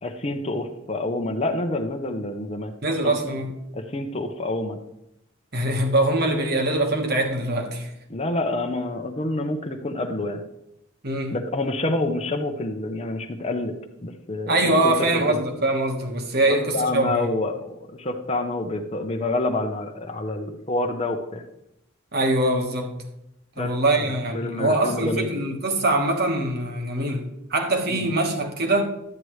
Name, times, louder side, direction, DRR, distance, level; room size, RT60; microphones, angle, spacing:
voice 1, 0.0-2.7 3.0-3.4 3.7-4.8 8.1-10.4 11.3-13.8 14.0-14.9 15.3-15.4 16.5-21.4 23.6-23.7 24.0-25.3 27.9-28.1, left 2 dB, 30° left, 0.8 m, -28 dB
voice 2, 2.8-3.6 5.5-7.9 11.0-11.3 14.5-17.2 22.1-23.0 23.6-28.8, right 2 dB, 50° right, 1.4 m, -23 dB
12.0 x 9.5 x 3.2 m
head